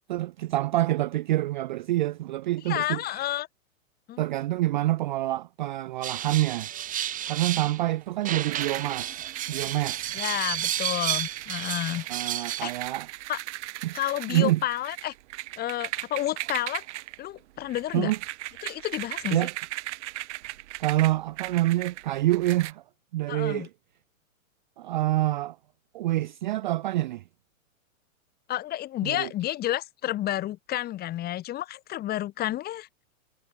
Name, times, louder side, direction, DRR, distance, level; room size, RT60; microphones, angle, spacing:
voice 1, 0.1-3.2 4.2-6.7 7.3-10.2 12.1-13.1 13.8-14.0 14.3-14.6 17.9-18.2 19.3-19.5 20.8-22.8 23.1-23.7 24.8-25.6 25.9-27.2 29.0-29.3, right 16 dB, 35° right, 0.4 m, -27 dB
voice 2, 2.7-3.5 4.1-4.2 10.1-12.1 12.4-12.7 13.3-13.4 13.9-15.1 15.6-16.8 17.2-18.1 18.6-19.4 23.3-23.7 28.5-32.9, left 14 dB, 20° left, 1.7 m, -30 dB
sound 1, 6.0-7.8 8.3-12.9, right 11 dB, 20° right, 1.6 m, -32 dB
sound 2, 8.5-22.7, right 17 dB, 55° right, 5.5 m, -38 dB
hypercardioid pair, 145°, 42 cm